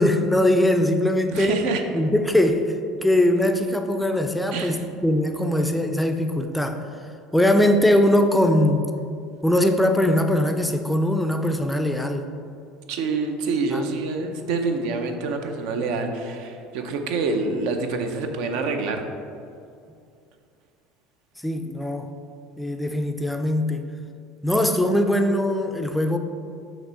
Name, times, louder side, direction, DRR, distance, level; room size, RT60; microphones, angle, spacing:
voice 1, 0.0-1.6 1.9-2.7 3.0-6.8 7.3-8.9 9.4-12.3 13.7-13.9 21.4-22.1 22.6-23.8 24.4-26.2, left 1 dB, 5° left, 6 dB, 0.4 m, -21 dB
voice 2, 1.3-1.8 4.5-4.8 12.9-19.0, right 3 dB, 70° right, 5 dB, 0.6 m, -26 dB
6.0 x 3.0 x 5.5 m, 2.4 s
cardioid pair, 140°, 0 cm